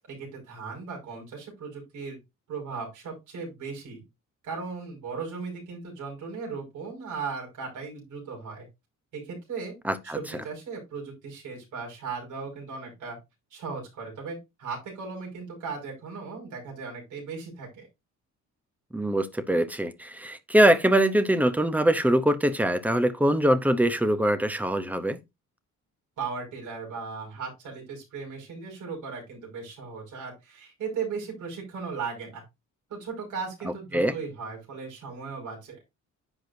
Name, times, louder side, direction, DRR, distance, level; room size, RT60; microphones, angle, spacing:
voice 1, 0.1-2.2 2.5-4.0 4.4-8.7 9.1-9.7 10.0-13.2 13.5-17.9 26.2-32.4 32.9-35.8, right 5 dB, 75° right, 5.7 m, -37 dB
voice 2, 9.8-10.2 18.9-25.2 33.9-34.1, right 1 dB, 5° right, 0.7 m, -23 dB
10.5 x 6.1 x 2.6 m
cardioid pair, 175°, 31 cm